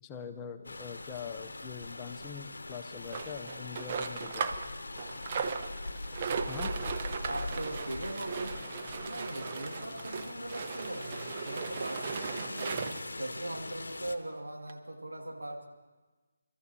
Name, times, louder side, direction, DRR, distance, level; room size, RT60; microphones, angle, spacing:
voice 1, 0.0-4.5 6.5-6.7, left 7 dB, 15° left, 7 dB, 0.5 m, -43 dB
Rain, 0.6-14.2, left 2 dB, 65° left, 0.9 m, -42 dB
sound 1, 3.1-4.7 5.0-13.1 13.8-13.9 14.1-14.2 14.7-14.8, right 5 dB, 35° right, 0.7 m, -37 dB
voice 2, 6.5-7.0 7.2-8.6 9.0-12.9 13.2-15.7, right 1 dB, 75° right, 1 dB, 2.2 m, -40 dB
28.5 x 13.5 x 2.8 m, 1.3 s
figure-of-eight pair, 150°, 0 cm